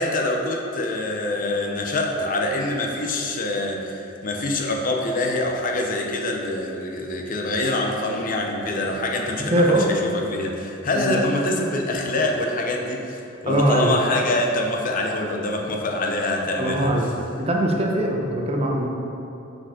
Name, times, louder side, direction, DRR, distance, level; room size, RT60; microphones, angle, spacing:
voice 1, 0.0-17.1, left 2 dB, 45° left, 1 dB, 0.6 m, -25 dB
voice 2, 9.5-9.9 10.9-11.1 13.5-13.9 16.6-17.1 17.4-18.9, right 1 dB, 30° right, 0 dB, 0.7 m, -21 dB
6.4 x 4.9 x 3.7 m, 2.8 s
head